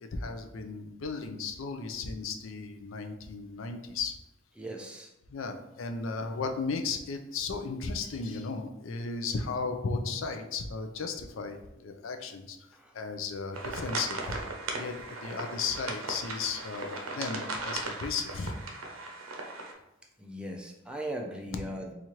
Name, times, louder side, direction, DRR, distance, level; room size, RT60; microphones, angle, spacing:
voice 1, 0.0-4.1 5.3-12.6 12.9-14.4 14.7-18.6, left 4 dB, 70° left, 6 dB, 0.4 m, -35 dB
voice 2, 4.6-5.1 12.8-12.9 20.2-21.9, right 1 dB, 5° right, 1 dB, 0.4 m, -38 dB
sound 1, 13.5-19.7, right 3 dB, 90° right, 0.6 m, -37 dB
4.2 x 2.5 x 3.0 m, 0.89 s
head